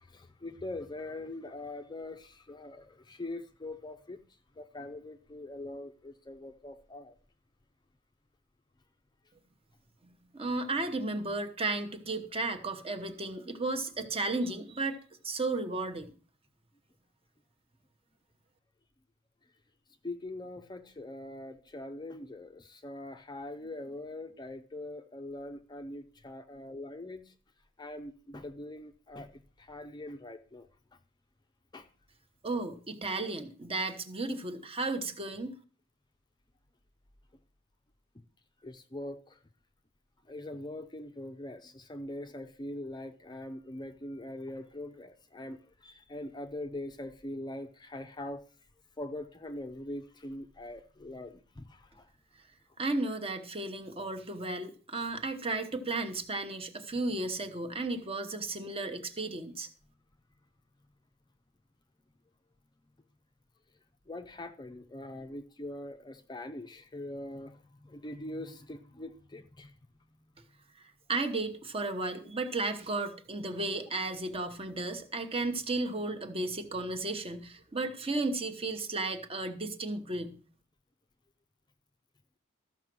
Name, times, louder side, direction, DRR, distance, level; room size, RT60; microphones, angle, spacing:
voice 1, 0.0-4.2 4.6-7.2 20.0-27.3 27.8-30.7 31.7-31.9 38.6-39.4 40.3-48.4 49.0-52.1 64.1-69.7, left 1 dB, 20° left, 7 dB, 0.6 m, -42 dB
voice 2, 10.3-15.0 15.2-16.1 32.4-35.5 52.8-59.7 71.1-80.4, right 2 dB, 25° right, 8 dB, 1.1 m, -34 dB
13.5 x 6.0 x 6.1 m, 0.41 s
head